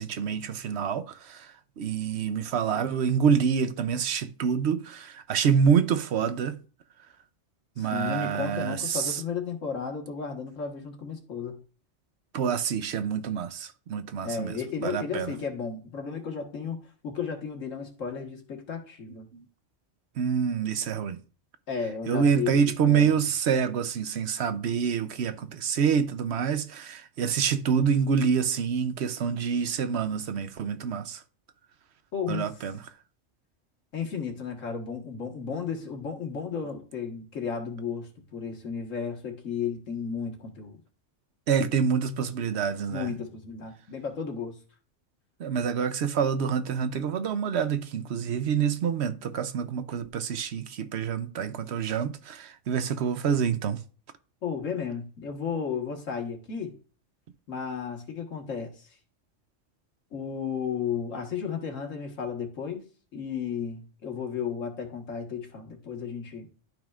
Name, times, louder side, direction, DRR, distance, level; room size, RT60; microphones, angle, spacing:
voice 1, 0.0-6.6 7.8-9.2 12.3-15.3 19.3-19.4 20.2-21.2 22.1-31.2 32.3-32.8 41.5-43.1 45.4-53.8, right 7 dB, 65° right, 0.9 m, -27 dB
voice 2, 7.8-11.6 14.2-16.8 17.0-19.3 21.7-22.6 22.9-23.2 32.1-32.5 33.9-40.8 42.9-44.6 54.4-56.7 57.5-58.8 60.1-62.8 63.1-66.5, left 6 dB, 90° left, 1.9 m, -33 dB
12.0 x 5.4 x 2.4 m
omnidirectional pair, 1.3 m